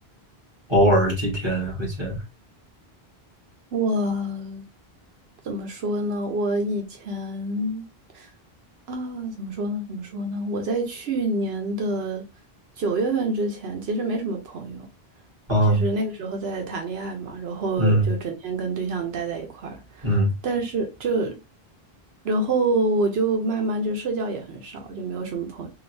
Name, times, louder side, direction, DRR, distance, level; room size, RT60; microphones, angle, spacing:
voice 1, 0.7-2.2 15.5-15.8 17.8-18.1 20.0-20.3, equal, 25° right, 1.7 m, -20 dB
voice 2, 3.7-4.6 5.4-7.9 8.1-8.3 8.9-12.2 12.8-14.9 15.6-21.4 22.2-25.7, right 2 dB, 85° right, 1.0 m, -27 dB
3.8 x 2.3 x 2.6 m
omnidirectional pair, 1.0 m